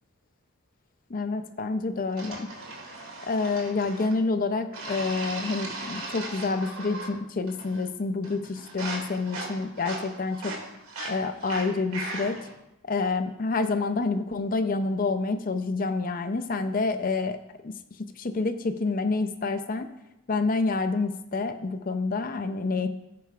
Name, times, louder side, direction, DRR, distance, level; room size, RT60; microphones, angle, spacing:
voice 1, 1.1-2.5 3.2-10.6 11.0-12.4 12.9-17.4 17.6-17.7 18.2-19.9 20.3-22.9, left 3 dB, 40° left, 9 dB, 0.5 m, -28 dB
sound 1, 2.2-4.2 4.7-7.2 7.5-7.9 8.2-12.5, right 2 dB, 80° right, 2.3 m, -38 dB
16.0 x 9.1 x 2.4 m, 0.88 s
head